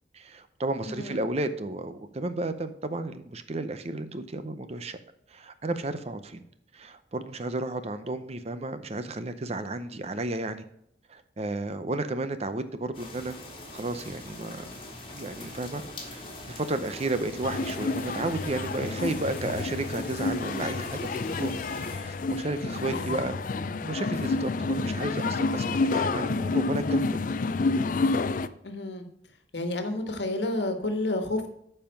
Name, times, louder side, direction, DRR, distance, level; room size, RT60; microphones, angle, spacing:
voice 1, 0.1-5.0 5.3-6.4 6.7-10.6 11.1-13.3 13.7-14.7 15.1-23.4 23.8-27.2, right 2 dB, 35° right, 11 dB, 0.7 m, -33 dB
voice 2, 0.8-1.2 22.9-23.2 28.6-29.0 29.5-31.5, left 2 dB, 85° left, 6 dB, 1.4 m, -30 dB
sound 1, 12.9-22.0, left 2 dB, 30° left, 2.2 m, -42 dB
sound 2, 17.4-28.5, left 3 dB, 50° left, 0.4 m, -29 dB
9.1 x 5.6 x 5.3 m, 0.75 s
head